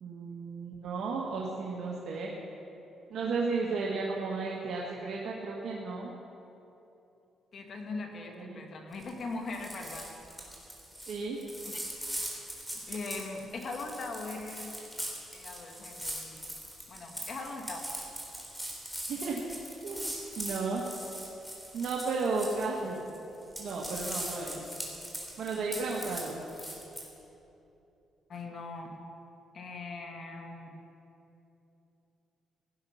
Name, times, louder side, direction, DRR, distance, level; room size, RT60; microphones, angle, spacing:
voice 1, 0.0-2.3 3.1-6.1 8.3-8.6 11.1-11.4 19.1-19.4 19.8-20.8 21.7-23.0 23.6-24.6 25.4-26.4, right 4 dB, 65° right, -3 dB, 1.7 m, -34 dB
voice 2, 7.5-10.1 11.6-11.8 12.9-14.8 15.3-16.5 16.9-17.9 28.3-29.0 29.5-30.8, left 3 dB, 55° left, 2 dB, 2.0 m, -40 dB
sound 1, 8.9-9.2 9.5-23.2 23.4-27.0, right 1 dB, 5° left, 3.9 m, -41 dB
16.5 x 10.5 x 5.8 m, 3.0 s
cardioid pair, 90°, 0 cm